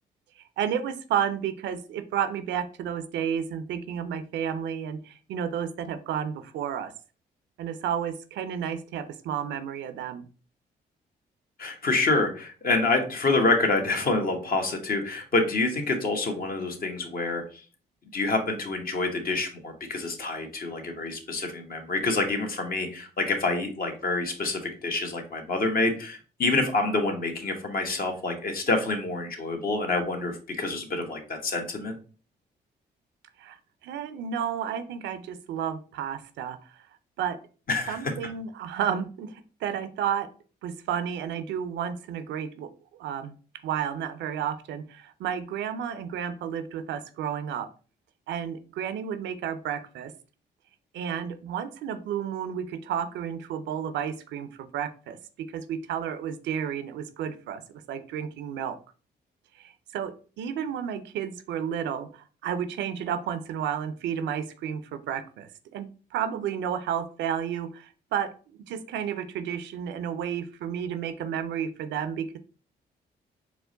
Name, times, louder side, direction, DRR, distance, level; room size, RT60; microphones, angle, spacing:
voice 1, 0.4-6.9 7.6-10.3 33.4-33.6 33.8-36.8 37.2-37.4 37.9-40.3 40.6-43.3 43.6-47.7 48.3-50.1 50.9-57.6 57.9-58.8 59.6-68.3 68.7-72.4, right 8 dB, 85° right, 11 dB, 0.5 m, -32 dB
voice 2, 11.6-17.4 18.1-32.0 37.7-38.1, left 3 dB, 55° left, 4 dB, 1.1 m, -27 dB
4.5 x 2.1 x 3.8 m, 0.38 s
cardioid pair, 65°, 18 cm